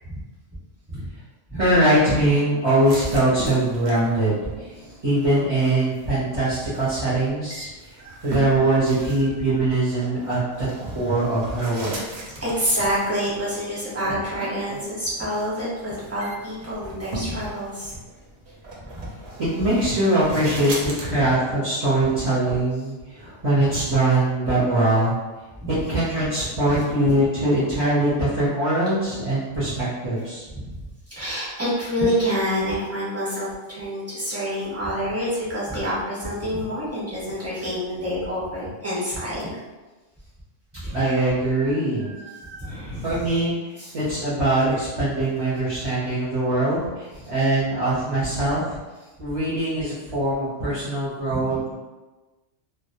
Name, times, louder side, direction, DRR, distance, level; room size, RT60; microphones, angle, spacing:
voice 1, 1.5-4.8 5.0-7.7 8.2-11.9 19.4-25.1 25.7-30.4 40.9-42.1 43.0-48.8 49.2-51.7, right 1 dB, 35° right, -10 dB, 0.6 m, -22 dB
sound 1, 2.8-21.0, right 2 dB, 65° right, 0.8 m, -38 dB
voice 2, 8.0-8.7 9.0-9.1 9.5-9.6 12.4-17.9 19.0-19.1 23.2-23.3 25.6-25.7 26.6-26.8 30.5-30.6 31.1-39.5 40.8-41.1 41.5-41.7 42.0-43.2 43.8-43.9 46.0-46.1 51.3-51.6, equal, 15° right, -9 dB, 0.9 m, -28 dB
2.1 x 2.1 x 2.8 m, 1.2 s
omnidirectional pair, 1.2 m